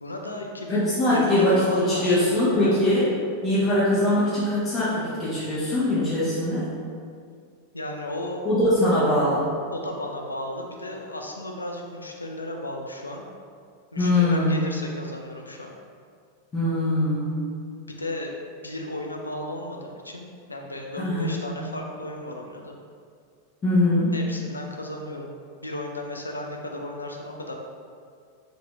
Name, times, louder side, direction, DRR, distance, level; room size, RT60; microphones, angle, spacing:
voice 1, 0.0-2.8 7.7-8.4 9.7-13.2 13.9-15.7 17.9-18.4 18.6-22.8 24.1-27.5, left 1 dB, 80° left, 1 dB, 0.4 m, -35 dB
voice 2, 0.7-6.7 8.4-9.5 14.0-14.5 16.5-17.4 21.0-21.4 23.6-24.2, left 1 dB, 25° left, -10 dB, 0.9 m, -22 dB
3.8 x 2.9 x 2.3 m, 2.2 s
figure-of-eight pair, 90°, 0 cm